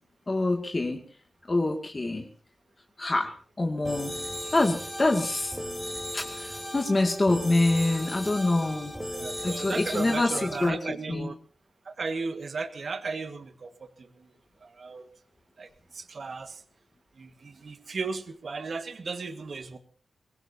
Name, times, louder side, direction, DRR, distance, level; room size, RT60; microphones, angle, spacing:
voice 1, 0.3-1.0 1.5-2.3 3.0-4.1 4.5-5.6 6.1-8.9 9.4-10.8 11.1-11.3, left 2 dB, 25° left, 2 dB, 2.3 m, -26 dB
sound 1, 3.8-10.7, equal, 5° right, 3.0 m, -37 dB
voice 2, 9.1-11.3 11.9-14.3 14.6-15.1 15.6-16.6 17.2-19.8, right 4 dB, 50° right, 9 dB, 1.7 m, -35 dB
24.0 x 21.0 x 2.8 m, 0.44 s
wide cardioid pair, 130°, 0 cm